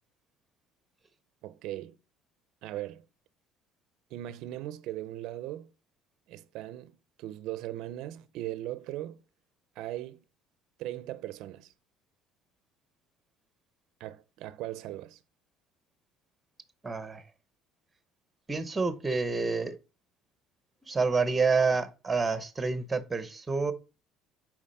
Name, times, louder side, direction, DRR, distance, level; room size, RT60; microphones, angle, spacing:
voice 1, 1.4-2.0 2.6-3.0 4.1-5.7 6.3-9.2 9.8-10.2 10.8-11.7 14.0-15.2, right 14 dB, 60° right, 0.5 m, -39 dB
voice 2, 16.8-17.2 18.5-19.7 20.8-23.7, right 4 dB, 10° right, 0.8 m, -28 dB
7.2 x 4.9 x 5.4 m
cardioid pair, 165°, 0 cm